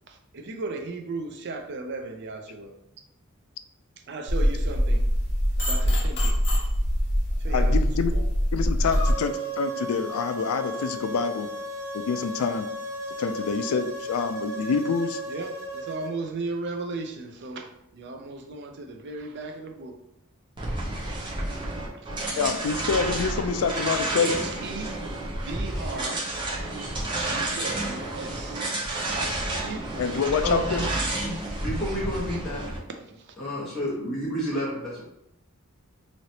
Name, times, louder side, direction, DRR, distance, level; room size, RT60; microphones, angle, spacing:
voice 1, 0.1-2.7 4.1-5.1 5.6-6.4 7.4-7.8 8.1-8.2 9.0-9.1 15.3-20.0 21.9-22.1 24.2-25.0 25.4-26.3 27.3-28.8 29.6-30.3 33.1-33.4, right 3 dB, 55° right, 4 dB, 0.4 m, -36 dB
sound 1, 4.3-9.1, equal, 55° left, 0.9 m, -23 dB
voice 2, 7.5-8.1 8.5-11.5 11.9-12.7 13.2-15.2 22.4-24.3 30.0-30.8, left 5 dB, 75° left, 8 dB, 0.3 m, -26 dB
sound 2, 8.9-16.1, right 1 dB, 90° right, 0.8 m, -35 dB
sound 3, 20.6-32.8, right 2 dB, 20° right, 0.8 m, -30 dB
voice 3, 30.4-30.9 31.2-32.7 33.4-35.0, equal, ahead, -10 dB, 1.1 m, -30 dB
3.1 x 2.9 x 2.7 m, 0.82 s
head